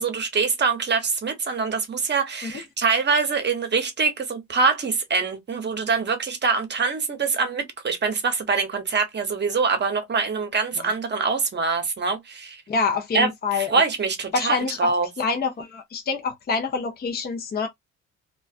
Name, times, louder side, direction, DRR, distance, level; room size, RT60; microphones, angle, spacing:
voice 1, 0.0-12.6 13.1-15.1, right 4 dB, 35° right, 0.8 m, -24 dB
voice 2, 12.7-13.8 14.3-17.7, left 4 dB, 30° left, 0.6 m, -26 dB
2.4 x 2.3 x 2.3 m
cardioid pair, 90°, 30 cm